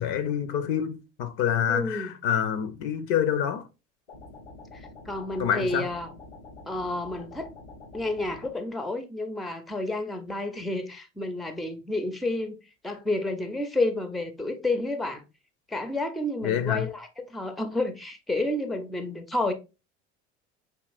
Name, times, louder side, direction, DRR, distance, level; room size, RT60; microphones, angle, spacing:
voice 1, 0.0-3.6 5.4-5.9 16.4-16.9, left 9 dB, 60° left, 0.6 m, -27 dB
voice 2, 1.7-2.1 4.7-6.1 6.7-7.5 7.9-12.6 12.8-15.2 15.7-19.5, left 2 dB, ahead, 0.4 m, -30 dB
sound 1, 4.1-8.5, left 3 dB, 90° left, 1.2 m, -46 dB
4.7 x 2.8 x 2.4 m
hypercardioid pair, 65°, 33 cm